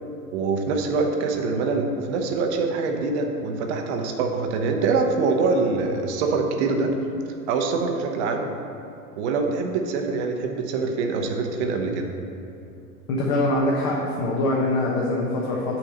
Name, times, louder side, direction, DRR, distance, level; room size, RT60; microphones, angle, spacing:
voice 1, 0.3-6.9 7.5-8.5 9.2-12.1, right 4 dB, 45° right, 3 dB, 0.9 m, -24 dB
voice 2, 13.1-15.8, left 2 dB, 40° left, -3 dB, 1.2 m, -23 dB
7.1 x 4.6 x 6.4 m, 2.9 s
figure-of-eight pair, 90°, 46 cm